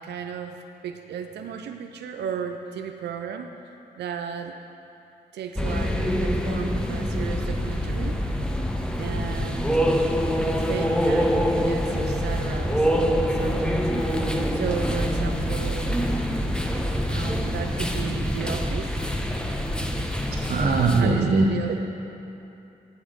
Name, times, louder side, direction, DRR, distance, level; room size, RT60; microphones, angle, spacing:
voice 1, 0.0-3.5 4.0-4.6 5.3-8.2 9.0-9.8 10.4-12.9 13.1-13.8 14.5-16.0 17.1-19.0 20.9-21.7, right 7 dB, 80° right, 5 dB, 0.5 m, -34 dB
sound 1, 5.5-21.0, equal, 5° left, 0.8 m, -25 dB
voice 2, 20.3-21.8, right 3 dB, 65° right, -2 dB, 0.9 m, -21 dB
8.5 x 7.2 x 5.1 m, 2.8 s
supercardioid pair, 50°, 17 cm